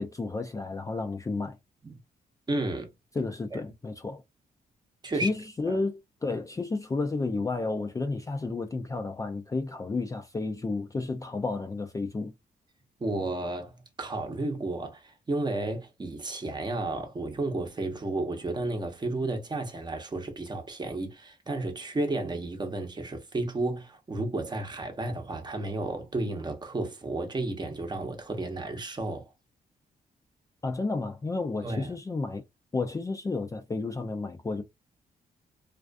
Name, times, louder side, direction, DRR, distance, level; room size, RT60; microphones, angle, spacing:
voice 1, 0.0-1.6 3.2-4.2 5.2-12.3 30.6-32.4 32.7-34.6, left 3 dB, 20° left, 0.4 m, -31 dB
voice 2, 2.5-2.9 3.5-3.6 5.0-5.3 5.7-5.8 13.0-29.3 31.6-32.0, right 2 dB, 30° right, 0.8 m, -32 dB
2.4 x 2.4 x 2.2 m
cardioid pair, 90°, 16 cm